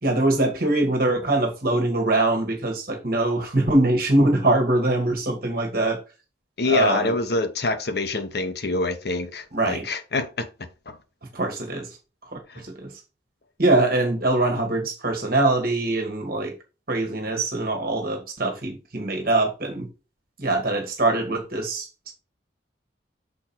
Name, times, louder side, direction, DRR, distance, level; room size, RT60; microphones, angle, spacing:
voice 1, 0.0-6.0 6.7-7.1 9.5-9.9 11.3-11.9 12.2-12.9 13.6-16.5 16.9-19.9 20.4-22.1, right 2 dB, 50° right, 1.8 m, -23 dB
voice 2, 6.6-11.0 12.5-12.6, left 3 dB, 60° left, 0.8 m, -26 dB
6.3 x 4.7 x 4.4 m
head